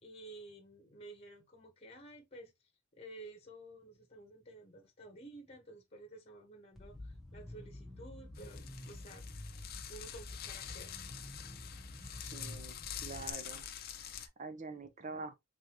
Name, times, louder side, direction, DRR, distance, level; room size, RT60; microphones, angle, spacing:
voice 1, 0.0-9.2 9.9-11.0, right 2 dB, 30° left, 1.1 m, -53 dB
sound 1, 6.7-13.3, left 1 dB, ahead, 1.2 m, -49 dB
sound 2, 8.3-14.3, left 9 dB, 45° left, 0.6 m, -46 dB
voice 2, 12.1-13.7 14.0-15.3, right 3 dB, 35° right, 0.7 m, -46 dB
3.9 x 3.4 x 3.0 m
head